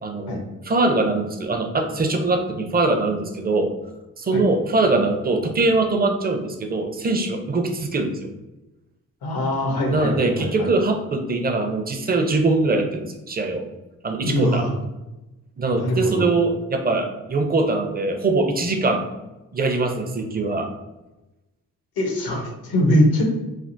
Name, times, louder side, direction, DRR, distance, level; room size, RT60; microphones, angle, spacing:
voice 1, 0.0-3.7 4.2-8.3 9.9-13.7 14.0-14.7 15.6-19.0 19.5-20.7, right 3 dB, 25° right, 5 dB, 0.5 m, -22 dB
voice 2, 9.2-10.7 14.2-14.7 15.7-16.3 22.0-23.3, left 1 dB, 80° left, 1 dB, 0.9 m, -22 dB
3.4 x 2.3 x 2.6 m, 1.0 s
cardioid pair, 60°, 36 cm